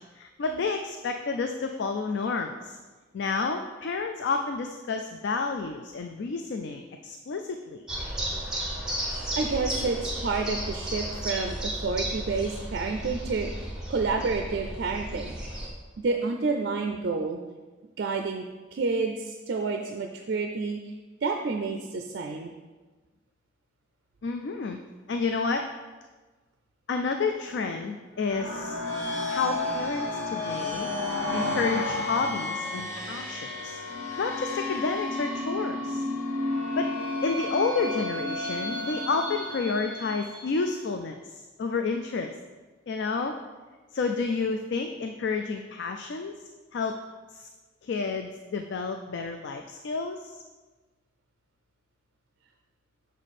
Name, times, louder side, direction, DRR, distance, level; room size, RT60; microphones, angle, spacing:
voice 1, 0.0-2.8 3.1-7.9 24.2-24.8 25.1-25.6 26.9-28.8 29.3-30.9 31.3-33.8 34.2-36.0 36.8-36.9 37.2-42.3 42.9-43.3 43.9-46.3 46.7-47.0 47.3-47.5 47.8-50.4, left 4 dB, 60° left, 5 dB, 0.4 m, -30 dB
sound 1, 7.9-15.7, right 1 dB, 5° right, 1.1 m, -33 dB
voice 2, 9.4-15.4 16.0-17.4 18.0-18.4 18.7-20.9 21.2-22.5, right 4 dB, 55° right, 4 dB, 0.4 m, -29 dB
sound 2, 28.2-40.7, left 2 dB, 85° left, 1.5 m, -32 dB
6.4 x 5.0 x 4.2 m, 1.3 s
head